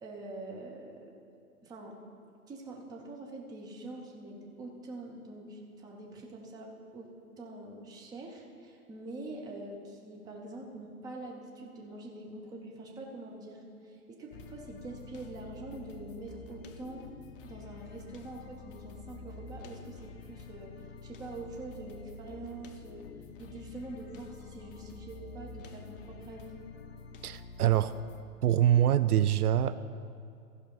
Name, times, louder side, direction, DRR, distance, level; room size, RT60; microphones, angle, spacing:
voice 1, 0.0-1.1 1.6-2.0 2.5-17.0 17.4-23.1 23.4-26.6, right 2 dB, 10° right, 0 dB, 0.7 m, -45 dB
sound 1, 14.3-28.2, left 4 dB, 40° left, 0.6 m, -48 dB
voice 2, 27.2-27.9 28.4-29.8, right 11 dB, 90° right, 14 dB, 0.5 m, -24 dB
14.5 x 5.6 x 5.4 m, 2.5 s
hypercardioid pair, 135°, 44 cm